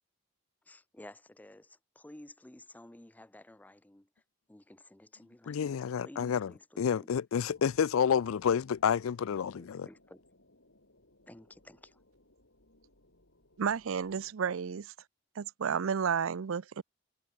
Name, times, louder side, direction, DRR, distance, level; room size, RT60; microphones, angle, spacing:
voice 1, 0.7-4.1 4.5-5.7 6.0-7.1 9.6-10.2 11.3-12.0, left 1 dB, 10° left, 0.5 m, -53 dB
voice 2, 5.5-9.9, left 7 dB, 90° left, 0.4 m, -29 dB
sound 1, 7.4-14.3, left 1 dB, 70° left, 7.6 m, -64 dB
voice 3, 13.6-14.9 15.4-16.8, right 7 dB, 80° right, 0.5 m, -32 dB
head